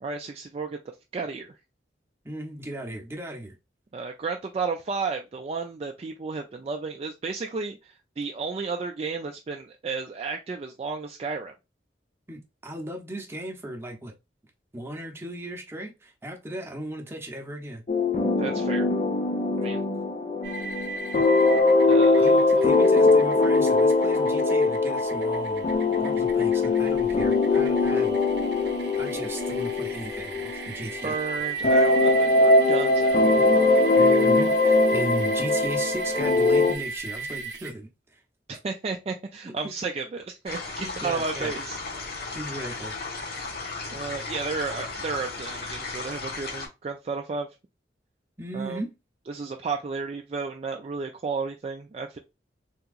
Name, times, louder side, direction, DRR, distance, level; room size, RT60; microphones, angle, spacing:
voice 1, 0.0-0.8 1.1-1.5 3.9-11.5 18.4-18.9 19.6-19.8 21.8-22.7 31.0-33.3 38.5-41.8 43.9-47.5 48.5-48.8 49.3-52.2, right 4 dB, 35° right, 0.3 m, -33 dB
voice 2, 2.2-3.6 12.3-14.1 14.7-17.8 21.1-21.2 22.2-28.2 29.0-31.4 33.4-33.5 34.0-38.2 39.5-39.7 40.8-41.5 42.3-43.5 48.4-48.9, right 1 dB, 15° right, 0.7 m, -36 dB
sound 1, 17.9-31.2 31.6-36.7, left 3 dB, 40° left, 0.6 m, -21 dB
sound 2, 20.4-37.7, right 4 dB, 65° right, 0.6 m, -36 dB
sound 3, 40.5-46.7, left 3 dB, 60° left, 1.1 m, -35 dB
3.5 x 2.8 x 2.3 m
head